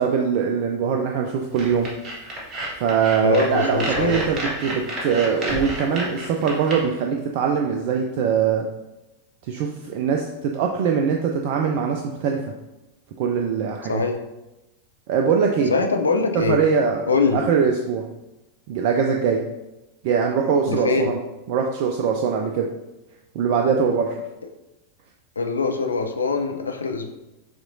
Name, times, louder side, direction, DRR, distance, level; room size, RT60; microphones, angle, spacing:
voice 1, 0.0-1.9 2.8-8.7 9.4-12.4 13.2-14.0 15.1-15.7 16.3-18.0 18.7-19.4 20.0-21.2 21.5-22.7 23.3-24.2, right 6 dB, 45° right, 2 dB, 0.3 m, -22 dB
sound 1, 1.5-6.8, right 1 dB, 30° right, 1.2 m, -30 dB
voice 2, 3.2-4.2 13.9-14.2 15.7-16.6 17.1-17.4 20.7-21.1 25.4-27.1, left 4 dB, 75° left, 5 dB, 0.4 m, -22 dB
6.1 x 3.0 x 2.6 m, 0.99 s
figure-of-eight pair, 90°, 0 cm